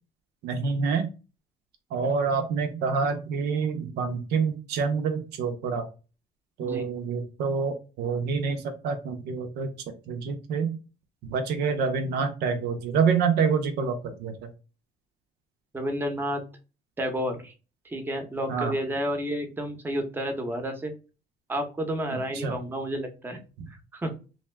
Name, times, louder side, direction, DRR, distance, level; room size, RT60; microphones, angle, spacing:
voice 1, 0.4-1.1 1.9-5.9 6.6-9.7 10.1-10.8 11.3-14.5 18.5-18.8 22.1-22.6 23.6-23.7, right 5 dB, 75° right, 7 dB, 0.6 m, -27 dB
voice 2, 15.7-16.4 17.0-17.5 17.8-20.9 21.5-23.4 23.9-24.1, equal, 10° right, 5 dB, 0.7 m, -30 dB
2.6 x 2.2 x 3.2 m, 0.32 s
cardioid pair, 110°, 17 cm